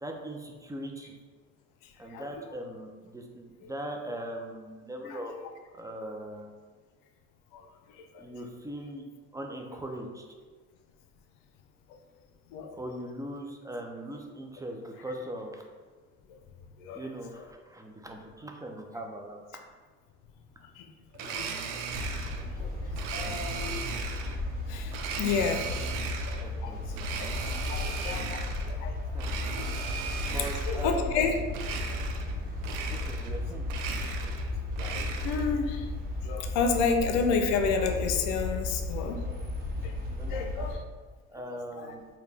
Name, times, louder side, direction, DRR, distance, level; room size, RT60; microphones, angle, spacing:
voice 1, 0.0-1.2 2.0-5.3 5.7-6.5 8.2-9.0 9.3-10.2 12.7-15.6 16.9-19.4 25.2-25.6 26.4-27.1 27.8-28.9 29.1-29.3 30.2-31.4 32.9-33.6 40.2-40.7 41.3-42.0, right 1 dB, 10° right, 2 dB, 0.4 m, -40 dB
Domestic sounds home sounds, 21.1-22.5 23.0-24.4 24.9-26.5 26.9-28.7 29.1-30.9 31.5-32.4 32.6-33.4 33.6-35.5, right 5 dB, 80° right, 0.5 m, -37 dB
sound 1, 21.9-40.8, left 2 dB, 30° right, 0.9 m, -34 dB
voice 2, 22.6-23.9 24.7-25.7 26.3-26.4 26.6-26.8 27.4-28.4 28.7-28.9 29.5-29.6 30.2-30.3 30.7-31.4 34.8-35.9 36.2-39.2 39.8-39.9 40.3-40.8 41.8-41.9, left 5 dB, 90° left, 5 dB, 0.5 m, -30 dB
4.6 x 2.2 x 3.4 m, 1.4 s
supercardioid pair, 95°, 30 cm